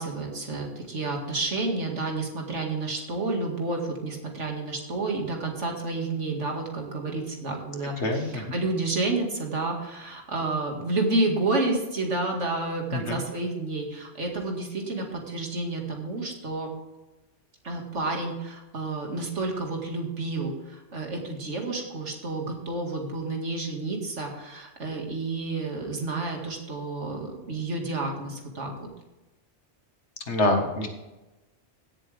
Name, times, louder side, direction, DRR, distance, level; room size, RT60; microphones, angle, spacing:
voice 1, 0.0-16.7 17.6-28.9, right 2 dB, 80° right, 1 dB, 2.4 m, -30 dB
voice 2, 8.0-8.4 12.9-13.2 30.3-30.9, left 2 dB, 70° left, 4 dB, 1.9 m, -25 dB
16.0 x 7.7 x 3.5 m, 1.1 s
omnidirectional pair, 1.2 m